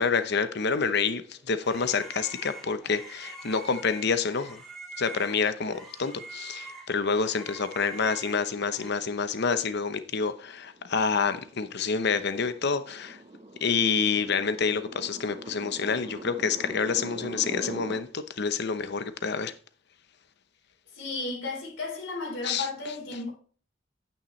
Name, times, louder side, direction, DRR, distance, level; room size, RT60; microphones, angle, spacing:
voice 1, 0.0-4.6 5.0-13.2 13.6-19.5 22.4-22.7, left 5 dB, 60° left, 0.8 m, -28 dB
sound 1, 1.0-8.9, right 3 dB, ahead, 2.5 m, -44 dB
sound 2, 10.0-18.0, right 1 dB, 30° right, 0.8 m, -43 dB
voice 2, 20.9-23.3, left 3 dB, 80° left, 3.9 m, -34 dB
8.8 x 8.8 x 3.2 m
head